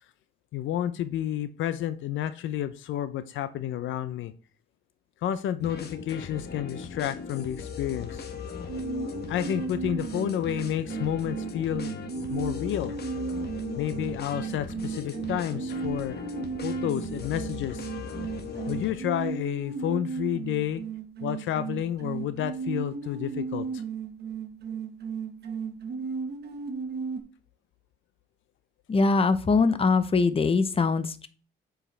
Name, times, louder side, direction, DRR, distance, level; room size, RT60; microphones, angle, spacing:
voice 1, 0.5-4.3 5.2-8.3 9.3-12.0 12.3-12.9 13.8-16.2 16.6-17.9 18.7-20.8 21.2-23.8, left 11 dB, 75° left, 13 dB, 0.5 m, -30 dB
sound 1, 5.6-18.9, left 6 dB, 55° left, 1.0 m, -38 dB
sound 2, 8.7-27.2, right 5 dB, 55° right, 1.1 m, -35 dB
voice 2, 28.9-31.3, left 4 dB, 30° left, 12 dB, 0.7 m, -22 dB
7.4 x 4.9 x 3.3 m, 0.37 s
cardioid pair, 90°, 20 cm